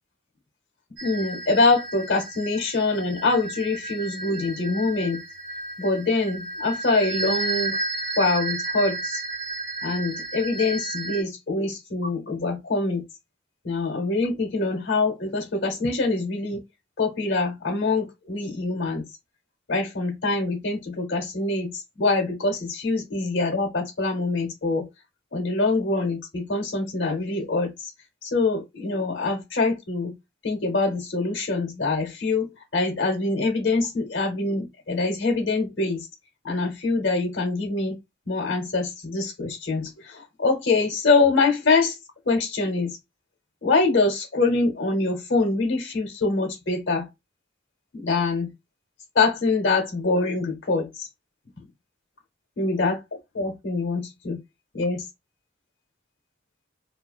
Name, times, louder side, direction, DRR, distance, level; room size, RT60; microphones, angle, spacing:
voice 1, 1.0-5.2 5.8-7.8 8.2-9.0 9.8-13.0 13.6-16.6 17.0-19.0 19.7-24.9 25.3-27.9 28.2-30.1 30.4-36.1 36.4-38.0 38.3-42.0 42.2-43.0 43.6-47.1 47.9-48.5 49.1-51.1 52.6-53.0 53.3-54.4 54.7-55.1, left 3 dB, 70° left, 0.9 m, -24 dB
sound 1, 1.0-11.2, right 2 dB, 65° right, 1.0 m, -32 dB
2.4 x 2.2 x 2.4 m
head